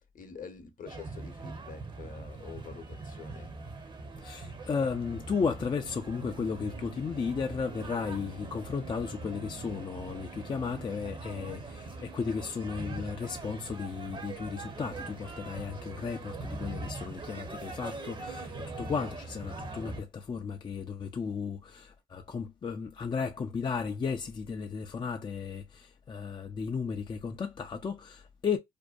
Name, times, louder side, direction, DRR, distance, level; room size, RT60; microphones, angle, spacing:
voice 1, 0.1-3.5, left 6 dB, 50° left, 0.8 m, -46 dB
sound 1, 0.9-20.0, right 3 dB, 25° right, 0.6 m, -42 dB
voice 2, 4.2-18.5 18.8-28.6, left 5 dB, 25° left, 0.3 m, -34 dB
sound 2, 5.8-13.7, right 11 dB, 90° right, 0.5 m, -52 dB
2.6 x 2.1 x 2.2 m
supercardioid pair, 65°, 18 cm